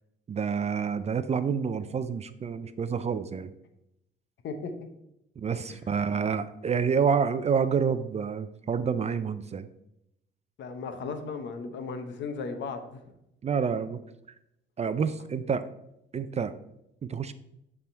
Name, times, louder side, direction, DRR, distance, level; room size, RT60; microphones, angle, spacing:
voice 1, 0.3-3.5 5.4-9.7 13.4-14.0 14.8-15.7 16.1-16.5 17.0-17.3, right 6 dB, 35° right, 12 dB, 0.4 m, -28 dB
voice 2, 10.6-13.1, left 4 dB, 70° left, 7 dB, 0.9 m, -36 dB
8.3 x 3.6 x 4.3 m, 0.81 s
cardioid pair, 90°, 20 cm